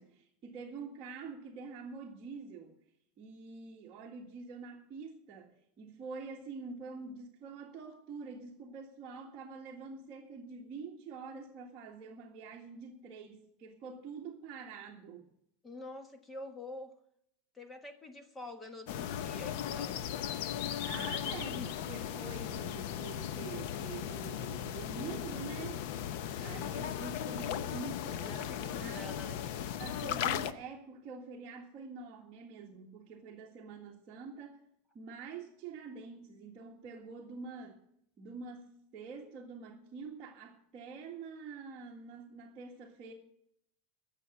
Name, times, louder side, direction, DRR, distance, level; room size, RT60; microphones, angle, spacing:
voice 1, 0.0-2.8 3.2-15.3 20.8-25.8 26.4-29.1 29.8-34.6 34.9-37.8 38.2-43.1, right 4 dB, 30° right, 1.8 m, -46 dB
voice 2, 15.6-16.9 17.5-20.1 20.8-21.1 26.4-26.7 28.2-29.4, left 1 dB, 10° left, 1.3 m, -47 dB
sound 1, 18.9-30.5, left 10 dB, 55° left, 0.8 m, -37 dB
17.0 x 7.1 x 8.1 m
supercardioid pair, 160°, 0 cm